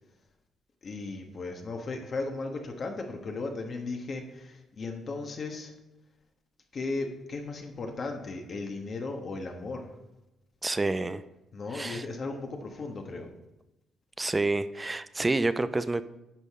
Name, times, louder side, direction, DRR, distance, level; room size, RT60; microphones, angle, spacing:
voice 1, 0.8-5.7 6.7-9.9 11.5-13.3, left 3 dB, 45° left, 3 dB, 1.4 m, -36 dB
voice 2, 10.6-11.2 11.7-12.0 14.2-16.0, right 2 dB, 20° right, 14 dB, 0.4 m, -28 dB
10.5 x 6.4 x 3.7 m, 0.96 s
cardioid pair, 90°, 0 cm